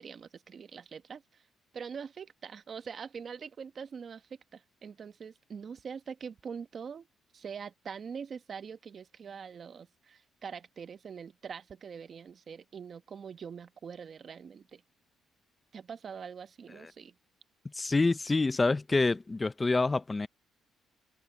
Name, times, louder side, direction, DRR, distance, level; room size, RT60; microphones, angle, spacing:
voice 1, 0.0-1.4 1.7-7.1 7.3-14.8 15.7-17.1, right 6 dB, 50° right, 1.1 m, -44 dB
voice 2, 17.7-20.3, left 3 dB, 25° left, 0.6 m, -27 dB
cardioid pair, 90°, 0 cm